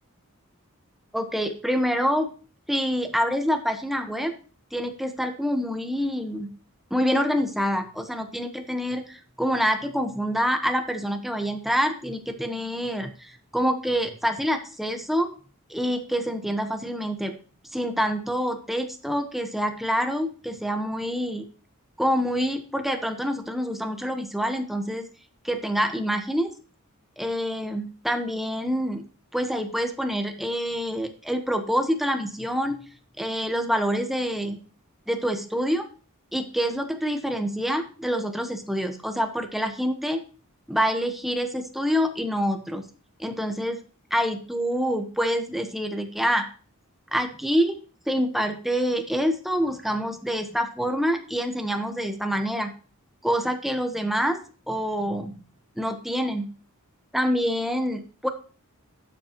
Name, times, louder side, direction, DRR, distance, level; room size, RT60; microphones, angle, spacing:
voice 1, 1.1-2.3 2.7-4.3 4.7-6.5 6.9-15.3 15.7-17.3 17.7-21.4 22.0-25.0 25.4-26.5 27.2-29.0 29.3-32.8 33.2-34.6 35.1-35.9 36.3-40.2 40.7-42.8 43.2-43.8 44.1-46.5 47.1-47.8 48.1-52.7 53.2-54.4 54.7-55.4 55.8-56.5 57.1-58.3, equal, ahead, 5 dB, 1.1 m, -26 dB
12.0 x 8.0 x 3.0 m, 0.38 s
head